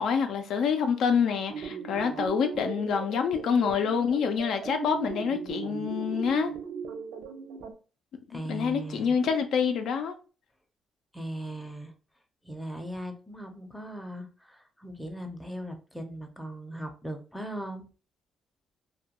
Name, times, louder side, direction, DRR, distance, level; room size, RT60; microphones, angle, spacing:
voice 1, 0.0-6.5 8.3-10.2, left 6 dB, 75° left, 0.4 m, -27 dB
sound 1, 1.5-7.7, right 6 dB, 80° right, 0.4 m, -38 dB
voice 2, 8.3-9.2 11.1-11.9 12.4-17.9, right 1 dB, 5° left, 0.5 m, -38 dB
2.2 x 2.2 x 2.8 m
cardioid pair, 90°, 0 cm